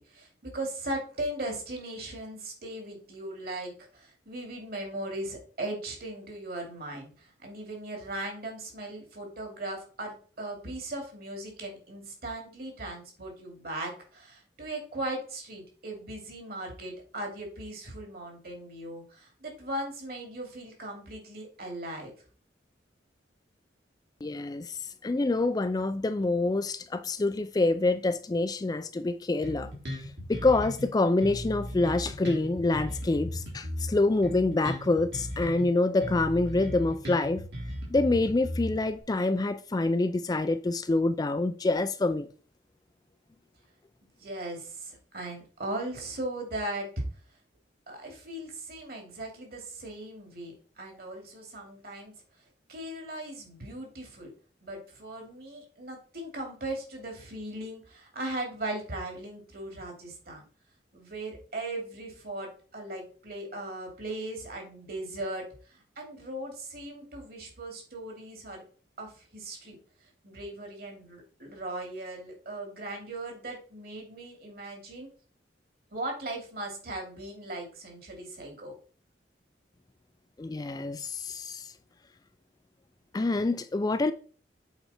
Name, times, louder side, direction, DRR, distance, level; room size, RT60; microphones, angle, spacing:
voice 1, 0.0-22.1 44.2-47.0 47.9-52.1 52.7-54.3 54.6-60.4 60.9-68.6 69.0-69.8 70.2-75.1 75.9-78.7, right 1 dB, 55° right, 2.5 m, -38 dB
voice 2, 24.2-37.4 37.9-42.3 80.4-81.7 83.1-84.1, left 2 dB, 20° left, 0.3 m, -27 dB
Bass guitar, 29.4-30.9 31.2-35.7 36.0-39.0, equal, 80° right, 3.4 m, -37 dB
8.0 x 4.6 x 4.2 m
head